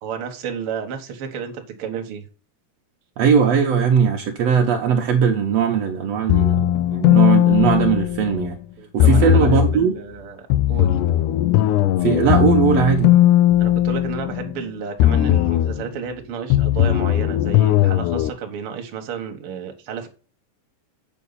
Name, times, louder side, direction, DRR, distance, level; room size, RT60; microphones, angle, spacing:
voice 1, 0.0-2.2 6.3-6.4 8.8-10.9 13.6-20.1, right 7 dB, 55° right, 1.7 m, -32 dB
voice 2, 3.2-8.6 8.9-9.9 12.0-13.1, right 7 dB, 70° right, 1.6 m, -19 dB
sound 1, 6.3-8.5 9.0-9.8 10.5-14.6 15.0-15.8 16.5-18.3, left 13 dB, 90° left, 1.7 m, -17 dB
8.4 x 5.8 x 4.1 m
omnidirectional pair, 4.2 m